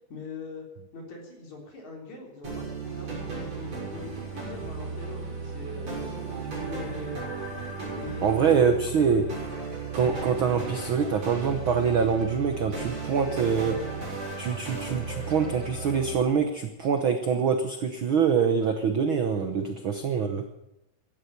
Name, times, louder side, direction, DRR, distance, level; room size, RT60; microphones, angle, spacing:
voice 1, 0.1-0.6 0.9-7.2 8.0-8.7 9.0-9.4 19.7-19.8, left 3 dB, 60° left, 0 dB, 4.9 m, -42 dB
sound 1, 2.4-16.2, right 4 dB, 50° right, 8.0 m, -35 dB
voice 2, 8.2-9.2 9.9-14.0 14.4-20.5, right 6 dB, 65° right, 6 dB, 1.2 m, -25 dB
16.0 x 12.5 x 6.8 m, 0.90 s
omnidirectional pair, 3.8 m